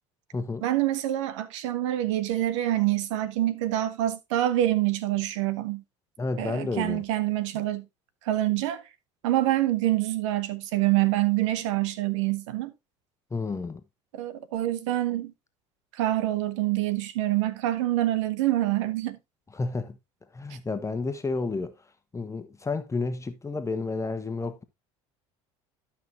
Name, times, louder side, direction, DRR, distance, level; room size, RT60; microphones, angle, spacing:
voice 1, 0.6-5.8 6.4-7.9 8.2-8.8 9.2-12.7 14.1-15.3 15.9-19.2, right 14 dB, 80° right, 1.1 m, -26 dB
voice 2, 6.2-7.0 13.3-13.8 19.5-20.0 20.3-21.7 22.1-24.6, left 3 dB, 20° left, 1.2 m, -31 dB
12.0 x 5.9 x 2.8 m
hypercardioid pair, 80°, 15 cm